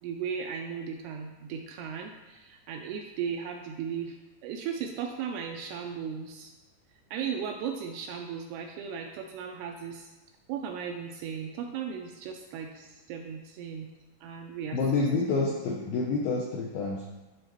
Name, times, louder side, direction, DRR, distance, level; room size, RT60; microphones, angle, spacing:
voice 1, 0.0-4.2 4.4-6.5 7.1-10.1 10.5-13.9 14.2-15.0 15.3-15.5, right 7 dB, 85° right, 3 dB, 2.4 m, -36 dB
voice 2, 14.7-17.0, left 3 dB, 85° left, -1 dB, 2.0 m, -28 dB
11.5 x 3.9 x 3.0 m, 1.1 s
omnidirectional pair, 5.0 m